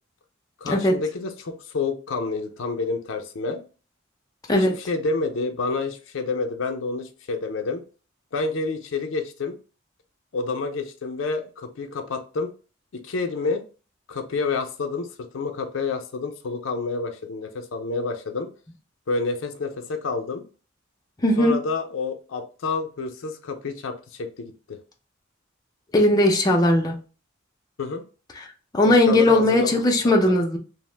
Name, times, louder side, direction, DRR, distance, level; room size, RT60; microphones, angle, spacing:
voice 1, 0.6-3.6 4.5-7.8 8.3-9.6 10.3-12.5 12.9-13.6 14.1-15.1 15.3-18.5 19.1-20.4 21.4-24.8 27.8-28.0 28.8-29.8 30.0-30.4, left 4 dB, 75° left, 6 dB, 0.5 m, -28 dB
voice 2, 21.2-21.6 25.9-27.0 28.7-30.6, left 1 dB, 20° left, 1 dB, 0.4 m, -18 dB
2.8 x 2.0 x 3.2 m, 0.35 s
head